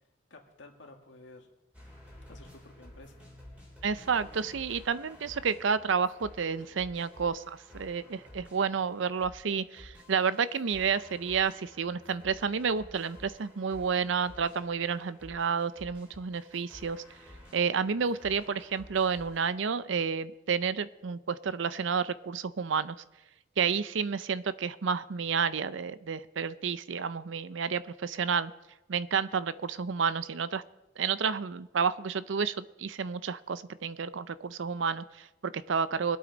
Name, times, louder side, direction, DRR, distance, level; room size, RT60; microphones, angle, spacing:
voice 1, 0.3-1.5 2.3-3.2, left 2 dB, 75° left, 3 dB, 1.9 m, -52 dB
sound 1, 1.7-19.5, left 1 dB, 5° right, 3.4 m, -52 dB
voice 2, 3.8-17.0 17.5-23.0 23.6-28.5 28.9-30.6 31.0-36.2, right 6 dB, 75° right, 15 dB, 0.5 m, -30 dB
23.0 x 8.6 x 4.0 m, 0.99 s
head